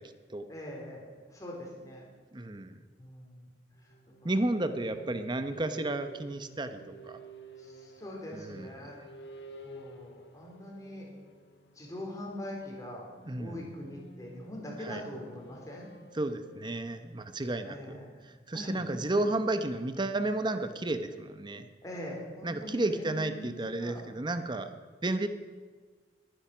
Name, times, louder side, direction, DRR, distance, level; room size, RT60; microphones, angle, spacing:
voice 1, 0.5-2.1 3.0-3.5 3.8-3.9 4.2-4.5 4.8-5.0 5.5-5.8 7.6-9.0 9.6-11.1 11.7-13.0 13.4-15.9 17.6-18.1 18.5-18.9 19.2-19.3 21.8-24.0, left 1 dB, 20° left, -2 dB, 4.1 m, -43 dB
voice 2, 2.3-2.8 4.2-7.2 8.3-8.7 13.2-13.6 14.8-15.0 16.1-18.0 18.5-21.7 22.4-24.7 25.0-25.3, right 2 dB, 25° right, 9 dB, 0.8 m, -32 dB
sound 1, 3.7-18.4, right 2 dB, 70° left, 1.4 m, -52 dB
21.5 x 10.0 x 6.1 m, 1.5 s
head